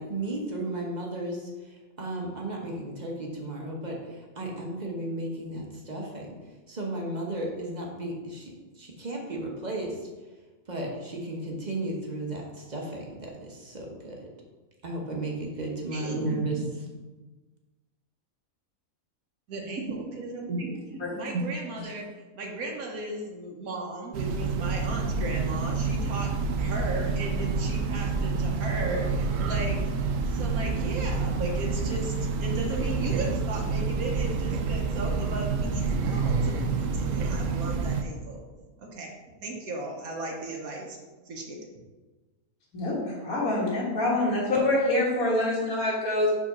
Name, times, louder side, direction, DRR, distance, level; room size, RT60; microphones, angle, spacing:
voice 1, 0.0-6.3 6.7-10.1 10.7-14.3 14.8-16.6, right 1 dB, 35° right, -1 dB, 1.1 m, -34 dB
voice 2, 15.9-16.6 19.5-22.1 22.3-26.3 26.6-29.8 30.3-38.4 38.8-39.1 39.4-41.0 41.3-41.7, right 2 dB, 85° right, 0 dB, 1.3 m, -35 dB
Train, 24.1-38.0, right 4 dB, 70° right, 0.9 m, -28 dB
voice 3, 42.7-46.3, left 2 dB, 90° left, -5 dB, 2.0 m, -25 dB
5.0 x 3.9 x 5.9 m, 1.2 s
omnidirectional pair, 1.5 m